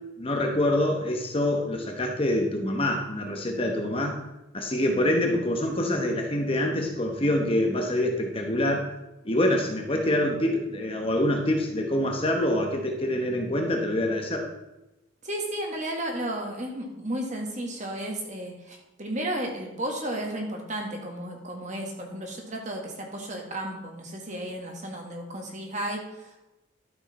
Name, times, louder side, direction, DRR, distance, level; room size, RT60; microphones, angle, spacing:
voice 1, 0.2-4.2 4.5-8.9 9.2-14.5, left 1 dB, 30° left, 2 dB, 1.0 m, -25 dB
voice 2, 15.2-26.5, right 1 dB, 35° right, 1 dB, 1.7 m, -33 dB
12.0 x 6.5 x 4.2 m, 0.97 s
head